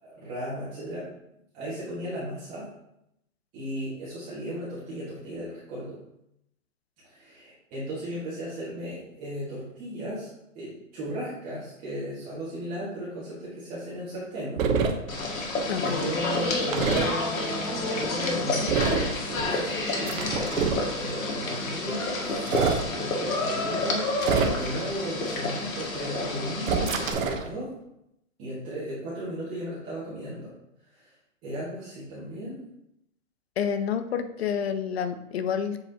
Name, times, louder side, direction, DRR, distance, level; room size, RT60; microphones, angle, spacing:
voice 1, 0.0-1.0 1.5-2.7 3.5-6.0 7.0-14.7 15.5-27.7 28.4-30.5 30.9-31.1 31.4-32.6, equal, 20° right, -10 dB, 1.6 m, -35 dB
sound 1, 14.6-14.9 16.7-17.1 18.7-19.1 20.1-20.8 22.4-22.8 24.2-24.8 26.6-27.5, right 5 dB, 80° right, 1.0 m, -25 dB
sound 2, 15.1-27.1, left 2 dB, 85° left, 1.7 m, -29 dB
voice 2, 15.7-16.1 33.6-35.8, left 7 dB, 50° left, 10 dB, 0.6 m, -29 dB
7.6 x 4.9 x 2.8 m, 0.81 s
hypercardioid pair, 165°, 40 cm